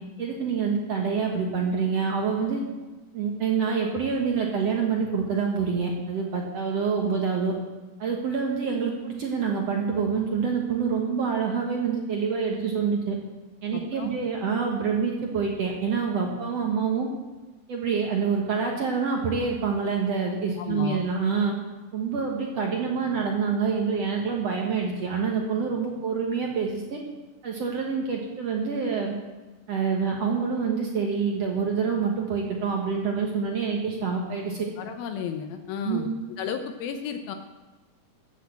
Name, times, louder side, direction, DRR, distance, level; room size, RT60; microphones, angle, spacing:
voice 1, 0.2-2.6 3.1-7.5 8.0-13.2 13.6-17.1 17.7-21.5 21.9-27.0 27.4-29.1 29.7-34.7 35.8-36.1, right 5 dB, 60° right, 0 dB, 1.7 m, -26 dB
voice 2, 13.7-14.1 20.6-21.0 34.8-36.1 36.4-37.4, left 7 dB, 75° left, 7 dB, 2.4 m, -33 dB
14.0 x 8.4 x 8.3 m, 1.2 s
omnidirectional pair, 4.7 m